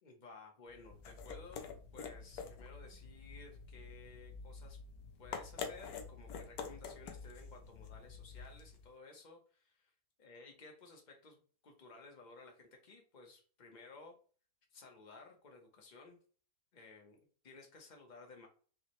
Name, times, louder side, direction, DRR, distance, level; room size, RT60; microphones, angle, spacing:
voice 1, 0.0-4.8 5.2-9.9 10.2-14.1 14.7-16.2 16.7-18.5, left 3 dB, 45° left, 2 dB, 0.6 m, -56 dB
sound 1, 0.7-8.9, left 6 dB, 70° left, 1.0 m, -48 dB
4.7 x 2.1 x 3.0 m, 0.41 s
omnidirectional pair, 1.8 m